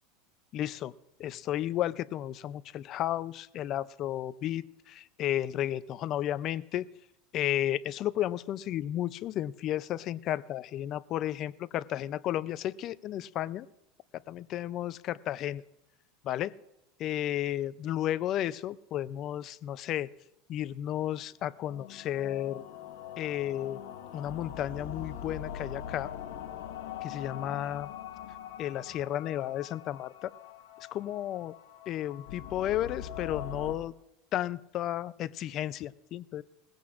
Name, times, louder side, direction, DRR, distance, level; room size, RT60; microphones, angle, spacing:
voice 1, 0.5-0.9 1.2-6.9 7.3-13.7 14.3-15.6 16.2-16.5 17.0-20.1 20.5-22.6 23.2-23.8 24.1-26.1 27.0-27.9 28.6-30.3 30.9-31.5 31.9-33.9 34.3-36.4, left 12 dB, 45° left, 16 dB, 0.5 m, -33 dB
sound 1, 21.5-33.8, left 9 dB, 80° left, 1.3 m, -42 dB
20.0 x 15.5 x 2.5 m, 0.87 s
supercardioid pair, 125°, 0 cm